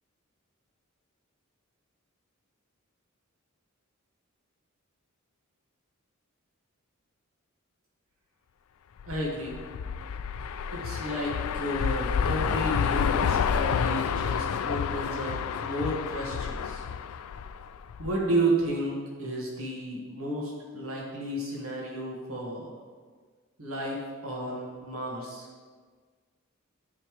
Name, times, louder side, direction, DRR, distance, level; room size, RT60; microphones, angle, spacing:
sound 1, 9.0-18.2, left 7 dB, 90° left, 0.4 m, -29 dB
voice 1, 9.1-9.6 10.7-16.8 18.0-22.7 23.6-25.5, right 1 dB, 80° right, -3 dB, 1.8 m, -32 dB
10.0 x 5.9 x 3.3 m, 1.5 s
head